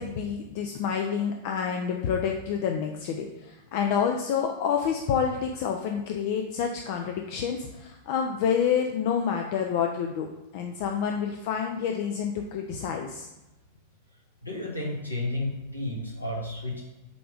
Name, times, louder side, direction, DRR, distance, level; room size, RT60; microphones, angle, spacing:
voice 1, 0.0-10.3 10.5-13.3, left 7 dB, 50° left, 3 dB, 0.6 m, -28 dB
voice 2, 14.4-16.8, left 1 dB, 85° left, -2 dB, 1.7 m, -32 dB
7.8 x 3.4 x 4.9 m, 1.0 s
figure-of-eight pair, 90°, 0 cm